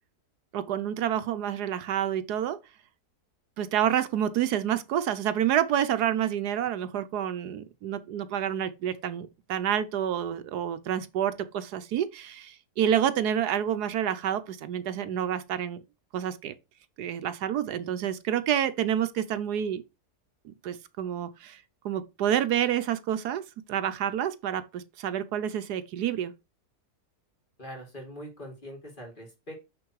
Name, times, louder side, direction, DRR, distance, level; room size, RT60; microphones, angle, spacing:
voice 1, 0.5-2.6 3.6-15.8 16.1-16.5 17.0-19.8 20.4-23.4 23.7-26.3, right 10 dB, 80° right, 1.3 m, -28 dB
voice 2, 27.6-29.6, equal, 30° left, 2.9 m, -42 dB
6.2 x 6.2 x 4.7 m
omnidirectional pair, 1.7 m